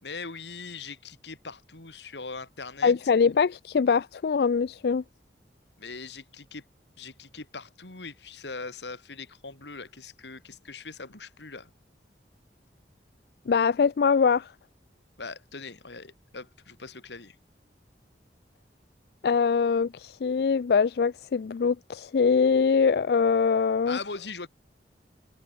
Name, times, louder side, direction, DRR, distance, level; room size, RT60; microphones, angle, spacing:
voice 1, 0.0-2.9 5.8-6.6 7.0-11.7 15.2-17.4 23.9-24.5, left 4 dB, 80° left, 2.5 m, -41 dB
voice 2, 2.8-5.0 13.5-14.5 19.2-24.0, left 5 dB, 60° left, 0.4 m, -23 dB
head